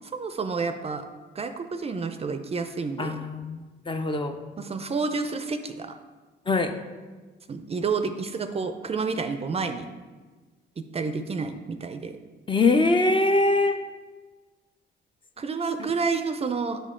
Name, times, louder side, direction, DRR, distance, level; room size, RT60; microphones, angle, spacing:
voice 1, 0.1-1.0 1.4-3.3 4.6-6.0 7.5-9.9 10.8-12.2 15.4-16.8, right 4 dB, 30° right, 8 dB, 0.4 m, -29 dB
voice 2, 3.0-4.4 6.5-6.7 12.5-13.8, left 2 dB, 25° left, 7 dB, 0.5 m, -23 dB
6.4 x 5.2 x 3.7 m, 1.3 s
cardioid pair, 90°, 20 cm